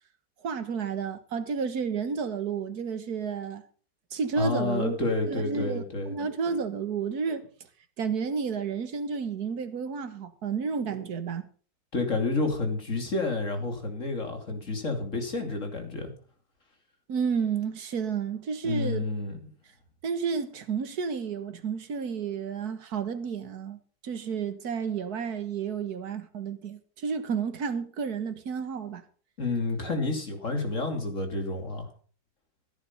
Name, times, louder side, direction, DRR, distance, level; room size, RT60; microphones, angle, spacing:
voice 1, 0.4-3.6 4.1-5.0 5.3-7.5 8.0-11.4 17.1-19.0 20.0-29.0, right 6 dB, 60° right, 1.9 m, -31 dB
voice 2, 4.4-6.1 11.9-16.1 18.6-19.5 29.4-31.9, left 3 dB, 45° left, 3.2 m, -29 dB
15.0 x 9.6 x 5.5 m
omnidirectional pair, 1.9 m